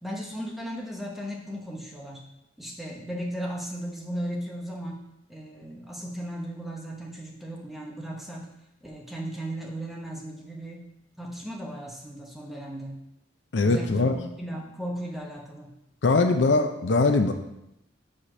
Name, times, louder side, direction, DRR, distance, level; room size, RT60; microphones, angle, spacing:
voice 1, 0.0-2.2 2.6-5.0 5.3-8.5 8.8-10.9 11.2-13.0 13.6-15.7, equal, ahead, -1 dB, 1.0 m, -36 dB
voice 2, 13.5-14.1 16.0-17.3, left 3 dB, 70° left, 6 dB, 0.6 m, -21 dB
5.0 x 4.2 x 5.9 m, 0.85 s
head